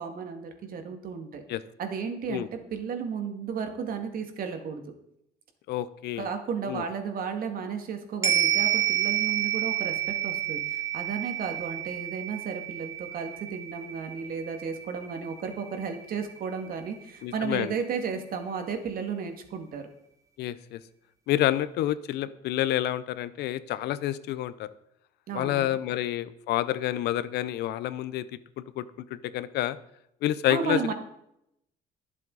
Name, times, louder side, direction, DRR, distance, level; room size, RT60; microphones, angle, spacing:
voice 1, 0.0-1.4 1.8-4.8 6.2-19.9 25.3-25.8 30.5-30.9, right 6 dB, 60° right, 5 dB, 2.3 m, -34 dB
voice 2, 5.7-6.3 6.7-6.8 17.2-17.7 20.4-20.8 21.3-24.7 25.3-28.2 28.8-28.9 29.1-29.8 30.2-30.9, left 13 dB, 80° left, 15 dB, 0.8 m, -28 dB
sound 1, 8.2-16.8 17.1-17.2, right 11 dB, 20° right, 2.0 m, -30 dB
21.5 x 7.5 x 4.1 m, 0.77 s
cardioid pair, 110°, 17 cm